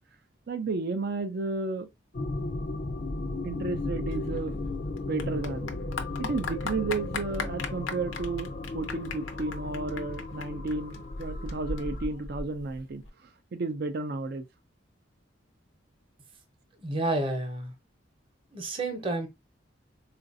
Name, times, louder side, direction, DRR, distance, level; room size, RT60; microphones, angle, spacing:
voice 1, 0.5-1.9 3.4-4.6 5.1-5.7 6.2-14.5, right 3 dB, 55° right, 0.4 m, -33 dB
sound 1, 2.1-12.1, left 2 dB, 45° left, 0.4 m, -35 dB
Clapping / Applause, 4.1-13.1, left 3 dB, 85° left, 0.6 m, -38 dB
voice 2, 16.8-17.7 18.5-19.3, right 2 dB, 30° right, 0.8 m, -30 dB
3.9 x 2.4 x 2.5 m
head